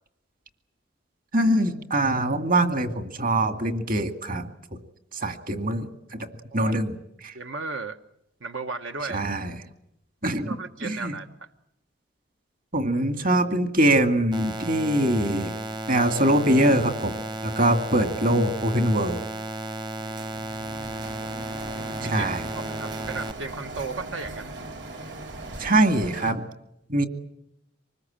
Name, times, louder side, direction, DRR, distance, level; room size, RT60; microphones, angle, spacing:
voice 1, 1.3-4.8 5.1-6.3 6.5-6.9 7.2-7.3 9.1-9.5 10.2-10.6 10.8-11.1 12.7-15.5 15.9-17.1 17.4-19.2 22.0-22.4 25.6-26.4 26.9-27.1, right 1 dB, 45° right, 8 dB, 2.2 m, -23 dB
voice 2, 7.3-8.0 8.4-9.2 10.5-11.5 20.0-21.1 21.7-22.3 22.5-24.5, right 4 dB, 80° right, 7 dB, 1.2 m, -36 dB
sound 1, 14.3-23.3, right 2 dB, 25° right, 0.9 m, -34 dB
Printer, 20.2-26.3, right 2 dB, 65° right, 3.6 m, -39 dB
25.5 x 20.5 x 8.8 m, 0.80 s
head